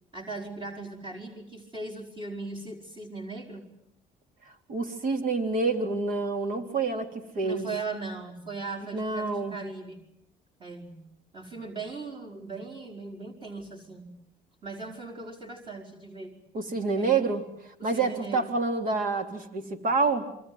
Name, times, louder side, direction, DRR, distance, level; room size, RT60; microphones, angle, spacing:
voice 1, 0.1-3.7 7.4-10.0 10.6-11.0 11.3-14.2 14.6-16.4 17.0-17.1 17.8-18.5, right 3 dB, 30° right, -1 dB, 4.9 m, -39 dB
voice 2, 4.5-7.7 8.9-9.6 16.5-20.3, right 4 dB, 60° right, 5 dB, 3.6 m, -28 dB
27.0 x 24.5 x 7.8 m, 0.75 s
supercardioid pair, 85°, 16 cm